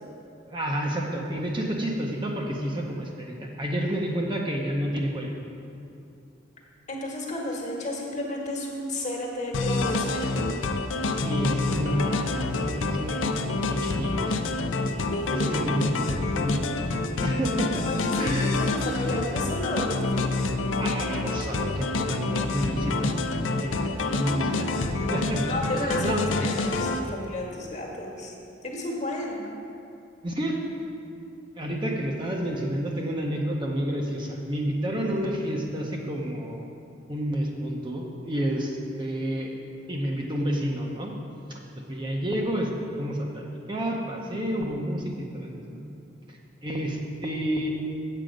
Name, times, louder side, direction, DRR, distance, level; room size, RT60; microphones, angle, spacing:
voice 1, 0.5-5.3 11.1-13.4 13.7-14.5 15.3-16.8 17.2-17.8 18.2-18.5 20.8-25.4 25.7-26.3 30.2-30.6 31.6-36.7 37.1-39.5 39.9-41.1 41.5-41.6 41.9-42.7 43.0-45.8 46.3-47.7, equal, 25° right, -1 dB, 0.7 m, -30 dB
voice 2, 6.9-10.3 15.1-15.5 17.8-20.5 25.5-28.3 28.6-29.4, left 1 dB, 40° left, -1 dB, 1.4 m, -32 dB
sound 1, 9.5-27.0, left 3 dB, 85° left, 0.5 m, -27 dB
7.6 x 7.5 x 5.1 m, 2.6 s
head